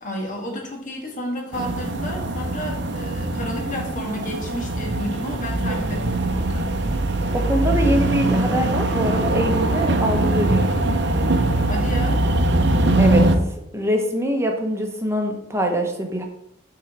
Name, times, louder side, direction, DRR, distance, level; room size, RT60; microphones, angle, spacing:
voice 1, 0.0-6.7 11.7-12.2, left 1 dB, 45° left, 1 dB, 1.7 m, -31 dB
sound 1, 1.5-13.4, right 2 dB, 60° right, 0.7 m, -22 dB
voice 2, 7.3-10.7 13.0-13.3 13.7-16.2, equal, 15° right, 3 dB, 1.0 m, -23 dB
6.3 x 3.9 x 6.0 m, 0.78 s
head